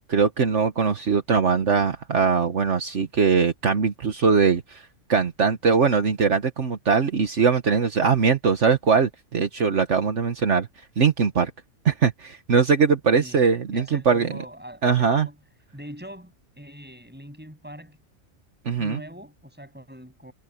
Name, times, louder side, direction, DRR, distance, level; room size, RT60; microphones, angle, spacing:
voice 1, 0.1-4.8 5.1-10.7 11.0-11.5 11.9-14.3 14.8-15.3 18.7-19.0, right 5 dB, 65° right, 1.6 m, -21 dB
voice 2, 13.1-13.5 13.7-15.4 15.7-18.0 18.8-20.3, equal, 5° right, 7.8 m, -42 dB
omnidirectional pair, 1.4 m